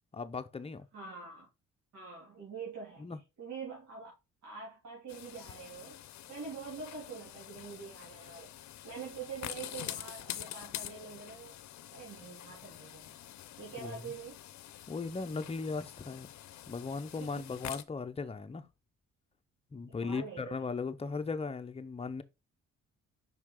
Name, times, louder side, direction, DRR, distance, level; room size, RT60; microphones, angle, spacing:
voice 1, 0.1-0.9 3.0-3.2 13.8-14.0 14.9-16.3 16.7-18.7 19.7-22.2, left 4 dB, 20° left, 0.7 m, -37 dB
voice 2, 0.9-1.5 1.9-4.1 4.4-6.0 6.3-8.5 8.8-11.5 11.9-13.2 13.6-14.4 17.2-17.6 20.0-20.7, right 5 dB, 70° right, 2.8 m, -45 dB
sound 1, 5.1-17.8, left 12 dB, 65° left, 0.6 m, -46 dB
5.6 x 4.7 x 3.7 m
cardioid pair, 90°, 30 cm